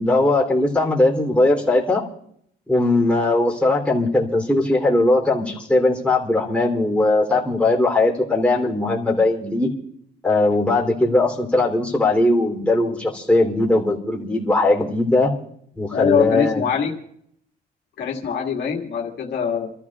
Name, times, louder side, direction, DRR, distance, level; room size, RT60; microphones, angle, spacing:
voice 1, 0.0-2.0 2.7-9.7 10.2-15.3 15.8-16.6, left 2 dB, 5° left, -3 dB, 3.3 m, -19 dB
voice 2, 15.9-16.9 18.0-19.7, left 7 dB, 75° left, -1 dB, 2.1 m, -23 dB
29.5 x 13.5 x 2.4 m, 0.69 s
cardioid pair, 110°, 18 cm